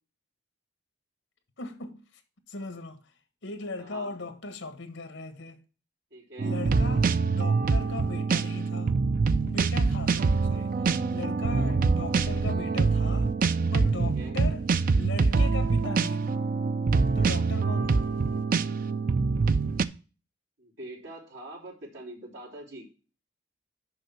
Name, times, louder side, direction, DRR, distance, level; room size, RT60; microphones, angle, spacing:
voice 1, 1.6-2.2 2.5-3.1 3.4-5.6 6.4-9.0 9.4-10.7 11.1-13.3 13.7-14.7 14.9-16.5 17.1-18.1, left 3 dB, 75° left, 1.4 m, -38 dB
voice 2, 3.8-4.1 6.1-6.6 10.1-10.7 11.4-11.7 14.0-14.4 20.6-22.9, right 1 dB, 70° right, 3.2 m, -44 dB
sound 1, 6.4-19.8, right 4 dB, 45° right, 0.4 m, -25 dB
6.4 x 5.5 x 5.8 m
head